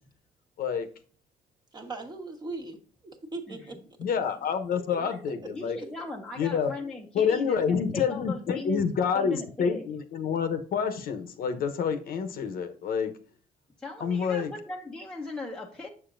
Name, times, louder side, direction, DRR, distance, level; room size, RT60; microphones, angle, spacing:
voice 1, 1.7-2.8 3.0-3.8 4.7-4.8 5.4-5.5 5.8-5.9, right 3 dB, 25° right, 1.3 m, -39 dB
voice 2, 3.5-3.8 5.0-9.8 13.8-15.9, left 3 dB, 5° left, 0.8 m, -39 dB
voice 3, 4.0-5.8 6.4-6.7 7.1-13.1 14.0-14.5, left 6 dB, 60° left, 1.0 m, -28 dB
6.9 x 6.8 x 2.6 m
cardioid pair, 110°, 17 cm